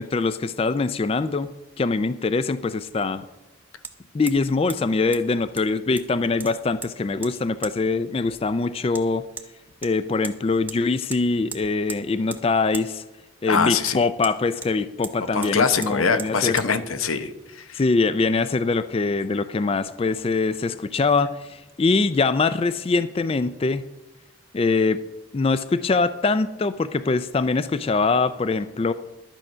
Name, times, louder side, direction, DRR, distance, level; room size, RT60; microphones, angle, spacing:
voice 1, 0.0-1.5 1.8-3.2 4.1-9.3 9.8-13.0 13.4-16.6 17.7-23.8 24.5-25.0 25.3-28.9, left 3 dB, 30° left, 14 dB, 0.3 m, -23 dB
Hammer, 3.8-3.9 4.3-4.4 4.7-4.8 5.1-5.2 5.6-6.1 6.4-6.9 7.2-7.3 7.6-7.7 8.9-9.0 9.4-9.5 9.8-10.4 10.7-10.8 11.1-11.2 11.5-12.0 12.3-12.4 12.7-12.9 13.8-14.7 15.0-15.2 15.4-15.5 15.8-15.9 16.2-16.3 16.6-16.7, right 4 dB, 10° right, 0.6 m, -37 dB
voice 2, 13.5-14.0 15.3-17.8, left 5 dB, 90° left, 10 dB, 0.9 m, -23 dB
12.0 x 9.0 x 5.6 m, 1.0 s
head